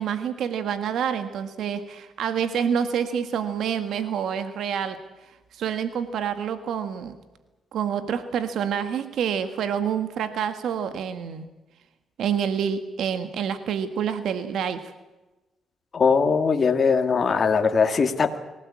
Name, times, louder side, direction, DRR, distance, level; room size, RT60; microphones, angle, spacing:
voice 1, 0.0-5.0 5.5-7.1 7.7-11.5 12.2-14.8, right 8 dB, 70° right, 9 dB, 1.7 m, -27 dB
voice 2, 15.9-18.4, left 5 dB, 40° left, 5 dB, 2.2 m, -20 dB
24.5 x 17.5 x 8.6 m, 1.1 s
cardioid pair, 90°, 0 cm